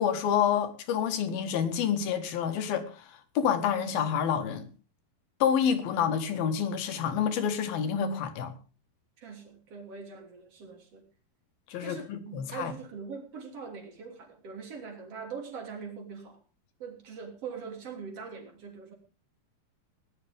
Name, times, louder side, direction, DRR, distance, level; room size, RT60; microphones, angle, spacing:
voice 1, 0.0-3.0 3.4-4.7 5.4-8.5 11.7-12.7, left 8 dB, 70° left, 3.4 m, -28 dB
voice 2, 9.2-11.0 11.8-16.4 16.8-18.9, right 5 dB, 40° right, 3.9 m, -42 dB
19.0 x 12.0 x 3.6 m
omnidirectional pair, 4.5 m